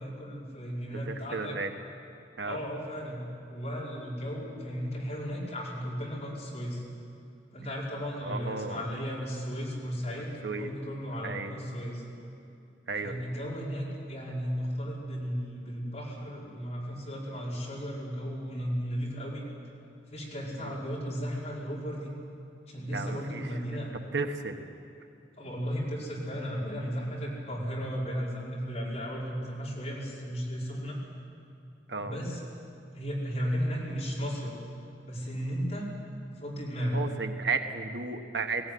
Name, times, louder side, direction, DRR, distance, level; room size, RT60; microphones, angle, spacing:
voice 1, 0.0-1.6 2.5-6.8 7.5-12.0 13.0-19.4 20.1-22.1 22.7-23.9 25.4-31.0 32.0-32.4 32.9-34.5 35.0-35.8 36.4-37.0, equal, 40° left, -5 dB, 5.4 m, -35 dB
voice 2, 1.1-1.7 2.4-2.6 8.2-8.8 10.4-10.7 11.2-11.5 12.9-13.1 20.6-20.8 22.9-23.8 24.1-24.6 31.9-32.2 36.9-38.7, right 4 dB, 85° right, 6 dB, 1.4 m, -34 dB
18.5 x 17.0 x 9.5 m, 2.7 s
head